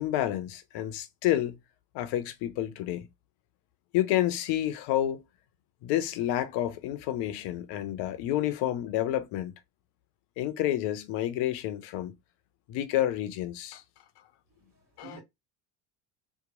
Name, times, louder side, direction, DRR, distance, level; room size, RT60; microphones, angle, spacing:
voice 1, 0.0-1.6 1.9-3.1 3.9-5.2 5.8-9.5 10.4-12.1 12.7-13.8, left 13 dB, 55° left, 0.7 m, -29 dB
voice 2, 14.5-15.2, right 5 dB, 50° right, 1.6 m, -51 dB
2.9 x 2.3 x 2.4 m
hypercardioid pair, 75°, 48 cm